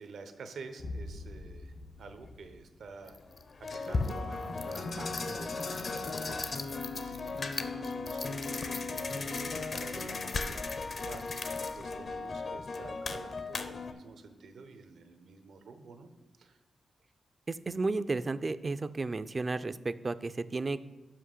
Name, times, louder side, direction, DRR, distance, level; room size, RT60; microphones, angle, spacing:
voice 1, 0.0-3.2 3.7-6.4 6.9-16.1 16.4-16.6, right 4 dB, 80° right, 8 dB, 0.7 m, -49 dB
sound 1, 0.8-3.4, left 2 dB, 80° left, 0.9 m, -44 dB
sound 2, 2.2-2.4 3.1-13.9, left 3 dB, 50° left, 0.6 m, -36 dB
voice 2, 17.5-20.8, right 3 dB, 35° right, 14 dB, 0.3 m, -33 dB
5.7 x 5.2 x 6.4 m, 1.2 s
cardioid pair, 80°, 0 cm